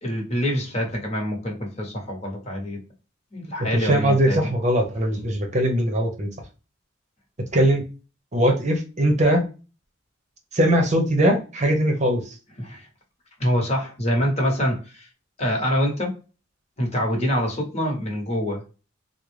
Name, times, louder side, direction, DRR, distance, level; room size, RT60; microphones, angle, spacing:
voice 1, 0.0-2.8 3.3-4.5 12.6-12.9 13.4-15.1 15.4-16.2 16.8-18.6, equal, 35° left, 0 dB, 1.1 m, -25 dB
voice 2, 3.7-6.3 7.5-7.8 8.3-9.5 10.5-12.3 17.1-17.3, right 1 dB, 35° right, 3 dB, 0.8 m, -21 dB
3.8 x 2.1 x 3.1 m, 0.34 s
head